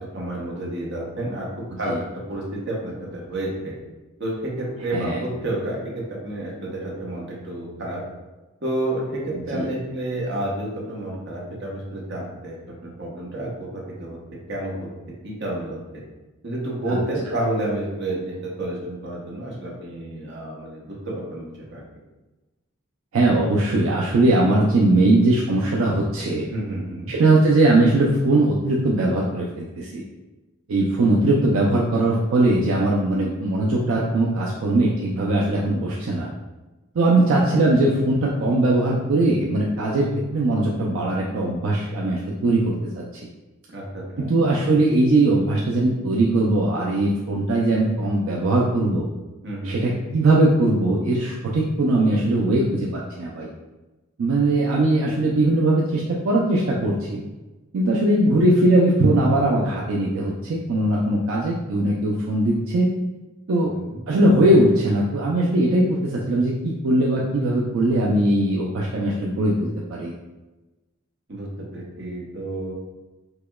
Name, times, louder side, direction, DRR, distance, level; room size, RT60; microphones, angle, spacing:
voice 1, 0.1-1.5 1.8-1.9 2.3-3.7 4.2-8.0 8.6-12.6 13.0-14.2 14.5-14.9 15.2-15.8 16.4-21.8 26.5-27.1 43.7-44.3 49.4-49.8 54.5-54.6 63.8-64.0 71.3-71.5 71.7-72.7, right 1 dB, 55° right, -3 dB, 0.9 m, -30 dB
voice 2, 9.3-9.7 16.9-17.0 23.1-26.5 27.1-30.0 30.7-36.3 36.9-40.1 40.3-43.3 44.2-49.0 49.6-53.5 54.2-57.2 57.7-62.9 63.5-63.7 64.1-70.1, right 2 dB, 80° right, -3 dB, 0.4 m, -20 dB
4.8 x 2.2 x 2.2 m, 1.1 s
head